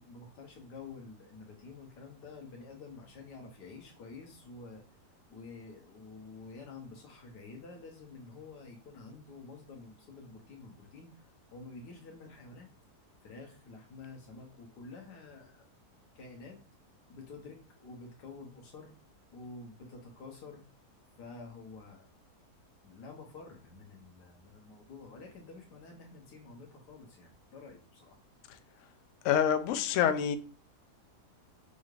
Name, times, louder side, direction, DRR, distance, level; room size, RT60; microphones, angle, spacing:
voice 1, 0.0-4.8 5.3-12.7 13.2-15.6 16.1-16.6 17.1-18.9 19.3-20.6 21.2-22.1 22.8-28.2, left 3 dB, 85° left, 1.5 m, -49 dB
voice 2, 29.2-30.4, left 9 dB, 70° left, 0.7 m, -27 dB
5.5 x 2.4 x 3.1 m
omnidirectional pair, 1.7 m